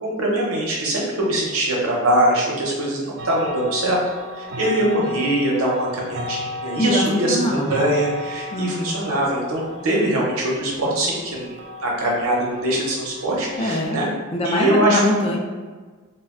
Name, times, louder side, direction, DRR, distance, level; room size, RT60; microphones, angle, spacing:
voice 1, 0.0-4.0 4.4-14.1 14.4-15.0, right 1 dB, 75° right, -3 dB, 0.7 m, -22 dB
sound 1, 3.2-13.8, left 2 dB, 50° right, 0.3 m, -35 dB
voice 2, 6.8-7.9 8.5-9.0 13.6-14.0 14.3-15.4, left 1 dB, 30° left, 0 dB, 0.3 m, -23 dB
2.3 x 2.2 x 3.5 m, 1.4 s
head